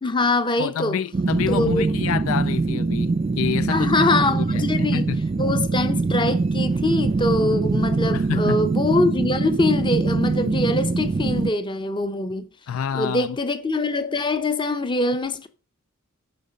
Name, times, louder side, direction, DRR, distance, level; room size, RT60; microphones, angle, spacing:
voice 1, 0.0-1.0 1.5-1.8 3.7-5.1 5.4-12.5 12.9-15.5, left 2 dB, 25° left, 0.8 m, -23 dB
voice 2, 0.6-5.2 8.1-8.6 12.7-13.4, left 8 dB, 75° left, 0.3 m, -28 dB
sound 1, 1.1-11.5, right 3 dB, 30° right, 0.3 m, -23 dB
10.0 x 5.1 x 5.3 m
head